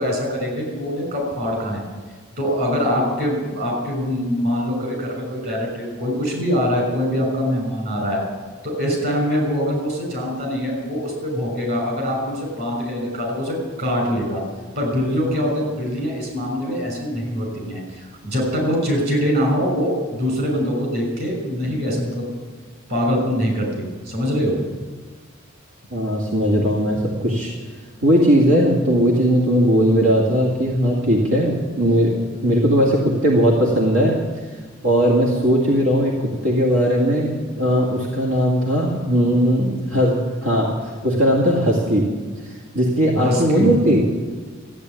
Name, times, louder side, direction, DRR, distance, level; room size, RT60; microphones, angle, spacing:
voice 1, 0.0-1.8 2.4-8.2 8.6-14.4 14.8-22.3 22.9-24.6 43.1-43.8, equal, 50° right, 1 dB, 5.8 m, -23 dB
voice 2, 25.9-27.5 28.0-34.2 34.8-36.1 36.4-40.2 40.4-40.7 41.0-42.0 42.7-44.0, equal, 90° right, -3 dB, 2.4 m, -18 dB
14.0 x 8.7 x 9.7 m, 1.4 s
head